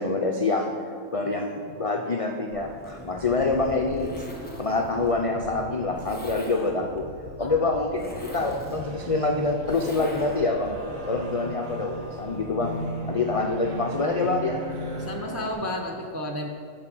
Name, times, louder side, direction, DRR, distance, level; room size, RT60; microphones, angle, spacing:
voice 1, 0.0-4.2 4.6-7.0 7.4-10.7 11.1-12.8 13.1-14.6, left 3 dB, 55° left, 2 dB, 0.4 m, -26 dB
sound 1, 2.5-8.3, equal, 65° right, 2.2 m, -43 dB
Zipper (clothing), 2.7-10.7, equal, 10° left, 0.9 m, -41 dB
sound 2, 8.1-15.5, equal, 85° right, 1.7 m, -36 dB
voice 2, 15.0-16.5, left 1 dB, 20° right, 2 dB, 0.4 m, -32 dB
9.8 x 5.2 x 6.0 m, 2.1 s
omnidirectional pair, 1.4 m